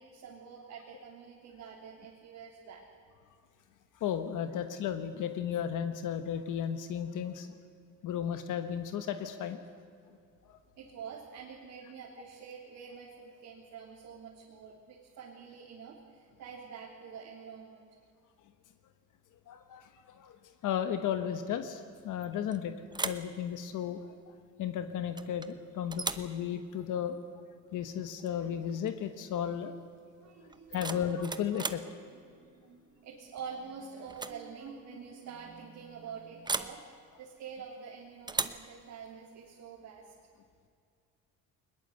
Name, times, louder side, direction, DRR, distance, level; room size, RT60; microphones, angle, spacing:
voice 1, 0.0-2.8 10.7-17.9 25.8-25.9 30.2-31.2 31.5-31.8 32.1-40.1, right 6 dB, 60° right, -3 dB, 3.4 m, -47 dB
voice 2, 4.0-7.5 8.0-9.6 10.5-10.6 19.5-22.7 23.0-24.1 24.6-27.2 27.7-29.7 30.7-31.8, left 9 dB, 65° left, 8 dB, 1.4 m, -34 dB
sound 1, 22.2-22.6 22.9-23.3 25.2-25.5 25.9-26.3 28.2-28.4 28.7-29.0 30.5-31.9 33.4-33.7 34.1-34.4 34.7-34.8 36.5-36.8 38.3-38.7, right 3 dB, 15° right, 0.9 m, -36 dB
21.0 x 20.5 x 8.0 m, 2.3 s
cardioid pair, 135°, 33 cm